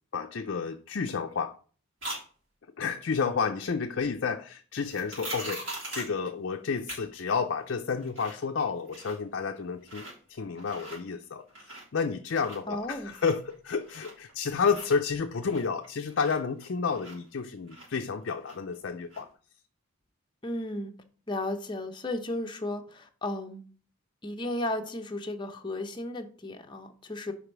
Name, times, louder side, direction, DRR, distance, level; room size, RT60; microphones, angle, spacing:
voice 1, 0.1-1.6 2.8-19.3, left 5 dB, 55° left, 0.4 m, -31 dB
sound 1, 2.0-2.2 4.9-6.2 6.9-7.0 7.4-7.5 7.9-8.4 8.7-9.3 9.8-10.1 10.5-11.0 11.4-12.0 12.3-14.3 14.6-17.4 17.7-18.8 19.1-19.2, right 1 dB, 65° right, 3.7 m, -41 dB
voice 2, 12.7-13.1 20.4-20.9 21.3-23.6 24.2-27.3, left 1 dB, 20° left, 0.7 m, -34 dB
5.3 x 4.9 x 5.9 m
head